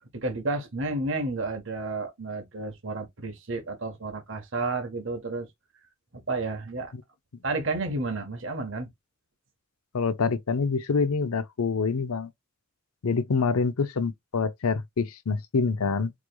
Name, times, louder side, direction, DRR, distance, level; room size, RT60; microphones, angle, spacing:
voice 1, 0.1-5.5 6.3-6.9 7.4-8.9, right 2 dB, 60° right, 1.2 m, -31 dB
voice 2, 9.9-12.3 13.0-16.1, left 4 dB, 85° left, 0.6 m, -26 dB
4.8 x 3.1 x 2.2 m
head